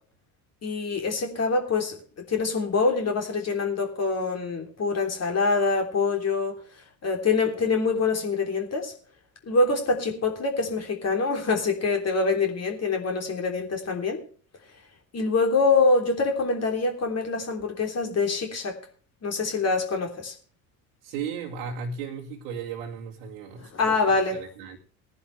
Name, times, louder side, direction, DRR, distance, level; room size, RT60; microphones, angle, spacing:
voice 1, 0.6-2.0 2.3-6.6 7.0-8.9 9.5-14.2 15.1-18.8 19.2-20.3 23.7-24.4, left 3 dB, 35° left, 3 dB, 3.3 m, -25 dB
voice 2, 21.0-24.8, right 6 dB, 65° right, -2 dB, 2.1 m, -36 dB
19.5 x 11.0 x 3.3 m, 0.41 s
figure-of-eight pair, 65°, 44 cm